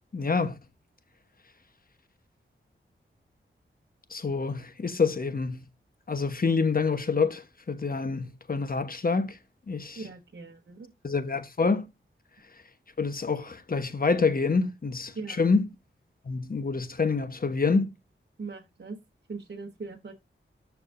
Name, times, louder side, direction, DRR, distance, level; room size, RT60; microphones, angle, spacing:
voice 1, 0.1-0.6 4.1-5.6 6.1-9.4 9.7-10.0 11.0-11.9 13.0-15.6 16.2-17.9, left 4 dB, 45° left, 1.1 m, -27 dB
voice 2, 9.9-10.9 15.1-15.4 18.4-19.0 19.3-20.1, right 4 dB, 55° right, 1.3 m, -40 dB
14.0 x 4.8 x 2.6 m
cardioid pair, 60°, 21 cm